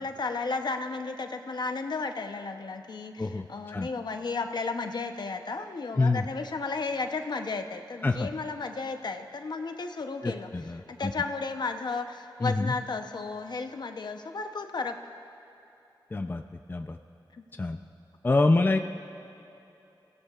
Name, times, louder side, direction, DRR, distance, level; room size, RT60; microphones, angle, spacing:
voice 1, 0.0-10.5 10.9-15.0 17.4-17.5, left 4 dB, 60° left, 6 dB, 0.8 m, -33 dB
voice 2, 3.2-3.9 6.0-6.3 8.0-8.3 10.2-11.1 12.4-12.8 16.1-16.4 16.7-17.0 17.6-17.8 18.2-18.8, left 3 dB, 25° left, 5 dB, 0.5 m, -26 dB
30.0 x 16.5 x 2.4 m, 3.0 s
wide cardioid pair, 105°, 8 cm